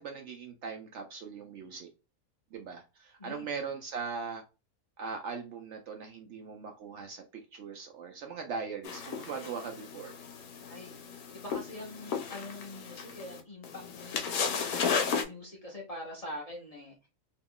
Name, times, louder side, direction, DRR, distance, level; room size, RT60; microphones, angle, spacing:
voice 1, 0.0-1.9 2.5-4.4 5.0-7.2 7.5-10.2, right 5 dB, 65° right, 0.8 m, -40 dB
voice 2, 3.2-3.5 10.7-10.9 11.3-17.1, left 1 dB, 30° left, 0.8 m, -44 dB
sound 1, 8.8-15.2, left 6 dB, 85° left, 1.1 m, -34 dB
2.9 x 2.3 x 3.6 m
omnidirectional pair, 1.5 m